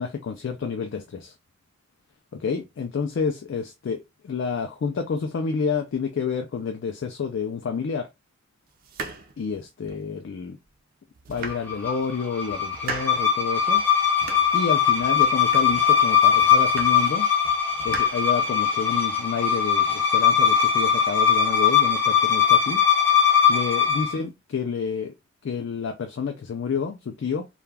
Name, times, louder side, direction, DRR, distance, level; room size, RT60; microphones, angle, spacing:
voice 1, 0.0-1.3 2.3-8.1 9.4-10.6 11.3-13.8 14.5-17.3 17.8-22.8 23.5-25.1 25.4-27.5, left 5 dB, 60° left, 0.3 m, -29 dB
sound 1, 8.8-10.1 10.6-10.7 11.1-12.1 12.5-13.3 13.7-14.7 15.0-16.0 16.4-17.2 17.4-18.8, right 3 dB, 45° right, 0.4 m, -38 dB
sound 2, 11.5-24.2, left 8 dB, 5° left, 0.7 m, -20 dB
2.3 x 2.2 x 3.2 m
head